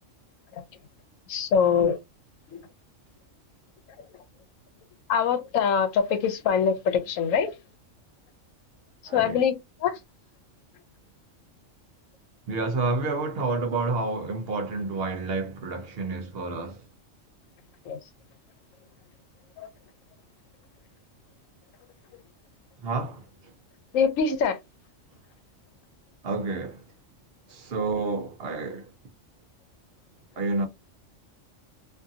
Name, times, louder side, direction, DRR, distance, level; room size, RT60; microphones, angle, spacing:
voice 1, 1.3-2.0 2.5-2.6 5.1-7.6 9.1-9.5 9.8-10.0 17.8-18.0 19.6-19.7 23.9-24.6, left 7 dB, 90° left, 1.0 m, -24 dB
voice 2, 12.5-16.8 22.8-23.2 26.2-26.8 27.5-28.8 30.4-30.7, right 3 dB, 60° right, 0.7 m, -29 dB
2.5 x 2.5 x 2.7 m
omnidirectional pair, 1.3 m